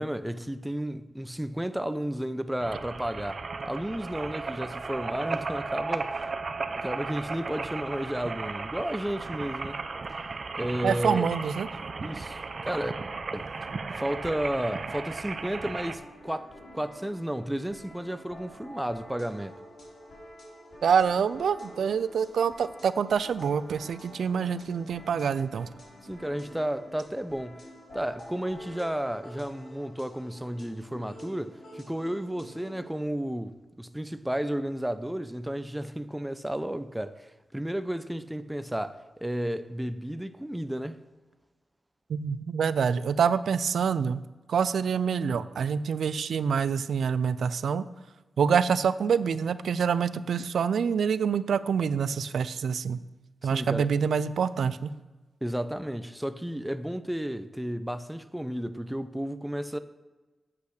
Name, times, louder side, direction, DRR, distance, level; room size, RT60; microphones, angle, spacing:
voice 1, 0.0-6.2 6.7-9.8 10.5-11.3 12.0-12.9 13.3-13.5 13.9-19.5 26.0-27.6 27.9-41.0 53.4-53.9 55.4-59.8, right 1 dB, 5° right, 0.6 m, -32 dB
sound 1, 2.6-16.0, right 4 dB, 50° right, 0.7 m, -35 dB
voice 2, 10.8-11.7 20.8-25.7 42.1-44.2 44.5-47.8 48.4-53.0 53.4-54.9, right 6 dB, 85° right, 0.4 m, -26 dB
sound 2, 15.9-32.9, equal, 60° left, 3.5 m, -48 dB
8.4 x 8.4 x 6.5 m
cardioid pair, 80°, 0 cm